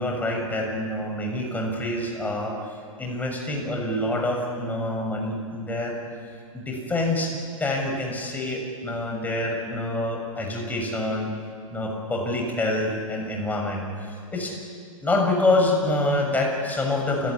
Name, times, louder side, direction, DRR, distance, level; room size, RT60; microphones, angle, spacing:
voice 1, 0.0-2.5 3.0-5.9 6.5-7.3 7.6-11.3 11.7-14.5 15.0-17.3, left 2 dB, 10° left, 0 dB, 6.7 m, -26 dB
28.5 x 17.5 x 9.9 m, 2.3 s
figure-of-eight pair, 110°, 18 cm